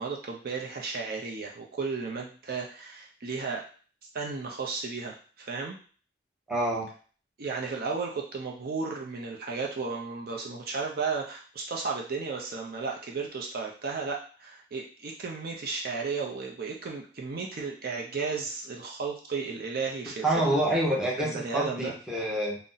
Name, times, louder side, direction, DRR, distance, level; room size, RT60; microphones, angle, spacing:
voice 1, 0.0-3.7 4.1-5.8 7.4-20.6 21.2-21.9, right 4 dB, 55° right, 0 dB, 0.5 m, -34 dB
voice 2, 6.5-6.9 20.2-22.6, right 1 dB, 5° right, -4 dB, 0.8 m, -27 dB
2.6 x 2.1 x 3.8 m, 0.40 s
head